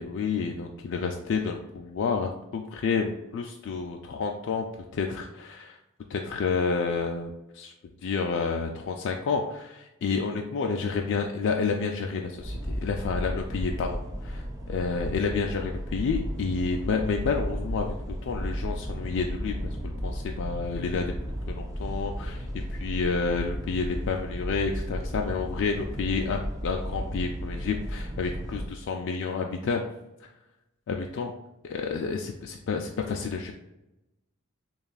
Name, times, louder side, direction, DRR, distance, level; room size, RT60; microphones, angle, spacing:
voice 1, 0.0-4.7 4.9-5.8 6.1-7.7 8.0-18.0 18.2-21.1 21.5-29.8 30.9-31.3 31.6-33.5, left 5 dB, 55° left, 2 dB, 0.3 m, -30 dB
sound 1, 12.4-28.7, equal, 15° right, 0.5 m, -34 dB
6.5 x 2.4 x 2.4 m, 0.92 s
head